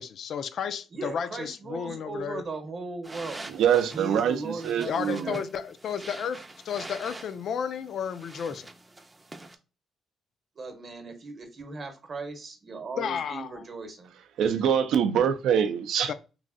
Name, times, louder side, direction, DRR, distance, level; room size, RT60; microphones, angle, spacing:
voice 1, 0.0-2.4 4.8-8.7 13.0-13.5 16.1-16.2, left 7 dB, 65° left, 0.3 m, -32 dB
voice 2, 0.9-3.5 3.8-5.4 10.5-14.1, right 3 dB, 45° right, 0.8 m, -38 dB
sound 1, 3.0-9.6, right 2 dB, 20° right, 0.4 m, -45 dB
voice 3, 3.5-5.4 14.4-16.1, right 8 dB, 80° right, 0.4 m, -24 dB
3.1 x 2.6 x 2.4 m
cardioid pair, 90°, 0 cm